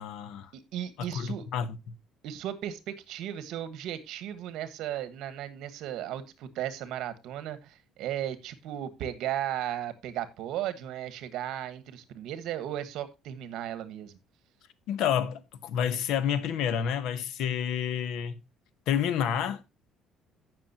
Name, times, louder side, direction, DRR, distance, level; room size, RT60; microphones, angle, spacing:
voice 1, 0.0-0.5 1.0-2.0 14.9-18.4 18.9-19.6, left 8 dB, 65° left, 1.0 m, -29 dB
voice 2, 0.5-1.5 2.2-14.2, right 11 dB, 70° right, 1.3 m, -35 dB
16.0 x 6.1 x 2.8 m
cardioid pair, 160°, 0 cm